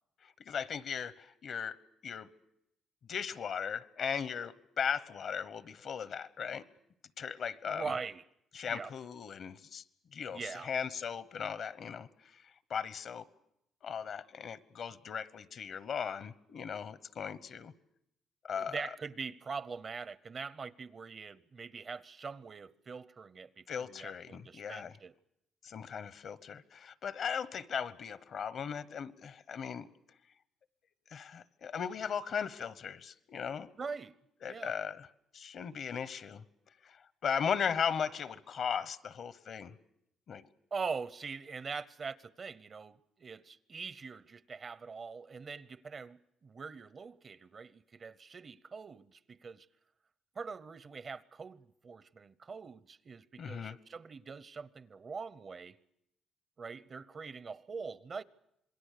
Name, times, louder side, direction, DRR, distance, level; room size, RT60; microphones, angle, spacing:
voice 1, 0.2-1.8 2.0-2.3 3.1-6.6 7.2-7.9 8.5-9.8 10.1-13.2 13.8-17.7 18.4-18.9 23.7-25.0 25.6-29.9 31.1-33.7 34.4-35.1 35.3-36.4 36.8-39.7 40.3-40.5 53.4-53.8, left 7 dB, 60° left, 1.0 m, -37 dB
voice 2, 7.6-8.2 8.6-8.9 10.3-10.7 18.6-25.1 33.8-34.2 34.5-34.7 40.7-49.7 50.3-55.8 56.6-58.2, right 5 dB, 40° right, 0.8 m, -43 dB
27.0 x 21.0 x 6.7 m
cardioid pair, 90°, 0 cm